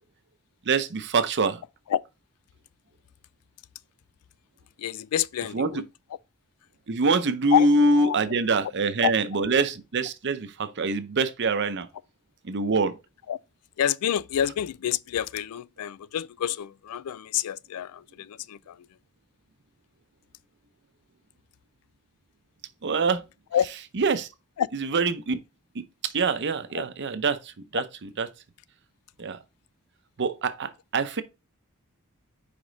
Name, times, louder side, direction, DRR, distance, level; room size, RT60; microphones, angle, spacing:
voice 1, 0.7-1.6 5.5-5.7 6.9-11.9 12.4-13.0 22.8-23.2 24.0-24.3 24.8-25.4 26.0-27.8 28.2-28.3 29.2-29.4 30.2-31.2, right 3 dB, 55° right, 0.7 m, -24 dB
voice 2, 4.8-5.8 7.5-7.7 7.9-8.2 9.0-9.1 13.3-13.4 13.8-18.9 23.5-23.7 24.6-24.7 26.7-26.8 27.7-27.8, left 10 dB, 85° left, 0.3 m, -28 dB
5.0 x 5.0 x 4.0 m
head